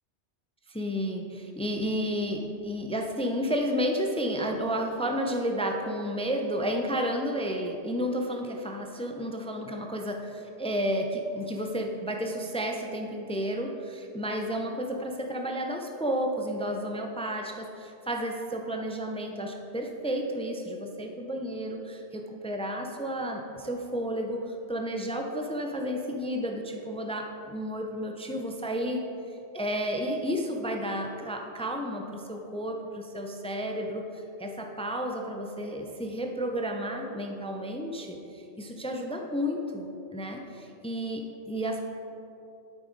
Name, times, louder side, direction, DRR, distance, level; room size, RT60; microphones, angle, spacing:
voice 1, 0.7-29.0 29.5-41.9, equal, 10° left, 2 dB, 0.3 m, -32 dB
8.8 x 8.4 x 3.9 m, 2.8 s
omnidirectional pair, 1.2 m